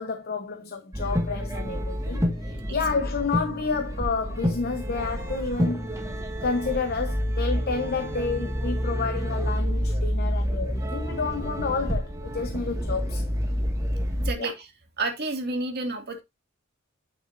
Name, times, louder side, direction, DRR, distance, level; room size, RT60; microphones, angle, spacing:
voice 1, 0.0-5.9 6.4-13.2 14.4-14.5, left 4 dB, 50° left, 0.9 m, -30 dB
sound 1, 0.9-14.3, equal, 15° right, 1.7 m, -28 dB
voice 2, 14.2-14.7 15.0-16.2, right 3 dB, 50° right, 2.1 m, -30 dB
9.7 x 6.2 x 2.5 m
head